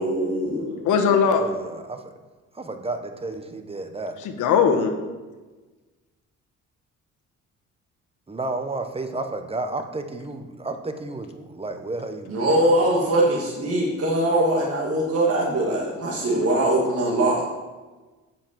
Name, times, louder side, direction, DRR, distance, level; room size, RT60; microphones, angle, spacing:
voice 1, 0.0-0.9 12.3-17.4, right 1 dB, 50° right, -4 dB, 1.9 m, -22 dB
voice 2, 0.8-1.5 4.2-4.9, left 6 dB, 85° left, 5 dB, 1.2 m, -19 dB
voice 3, 1.4-2.1 2.5-4.1 8.3-13.0, right 2 dB, 20° right, 7 dB, 1.1 m, -32 dB
7.4 x 5.7 x 7.4 m, 1.2 s
cardioid pair, 90°, 30 cm